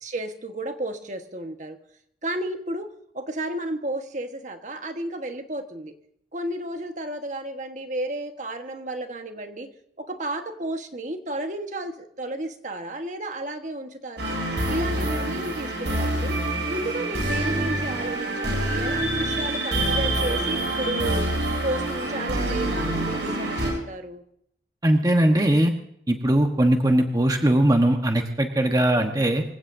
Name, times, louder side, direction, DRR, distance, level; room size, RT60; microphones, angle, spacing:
voice 1, 0.0-1.8 2.2-5.9 6.3-9.7 10.0-14.4 14.7-16.4 16.7-21.3 21.6-24.2, right 1 dB, 40° right, 6 dB, 1.4 m, -32 dB
sound 1, 14.2-23.7, right 1 dB, 75° right, 7.3 m, -26 dB
voice 2, 24.8-25.7 26.1-29.4, right 1 dB, 20° right, 4 dB, 1.2 m, -20 dB
25.5 x 16.5 x 2.7 m, 0.71 s
head